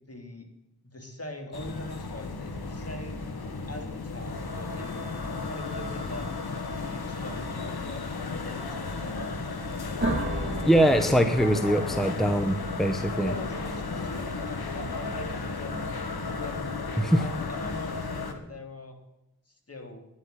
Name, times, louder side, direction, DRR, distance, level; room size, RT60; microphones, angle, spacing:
voice 1, 0.1-0.5 0.8-3.3 3.7-5.1 5.5-6.3 6.7-8.0 8.3-9.4 13.2-16.0 16.4-16.7 17.2-19.0 19.7-20.0, left 1 dB, 40° left, 4 dB, 2.7 m, -42 dB
sound 1, 1.5-18.3, left 3 dB, 80° left, 1.5 m, -34 dB
sound 2, 10.0-14.7, right 2 dB, 30° right, 2.2 m, -35 dB
voice 2, 10.6-13.3 17.0-17.2, equal, ahead, 7 dB, 1.0 m, -23 dB
10.5 x 8.1 x 9.1 m, 0.87 s
wide cardioid pair, 60°, 37 cm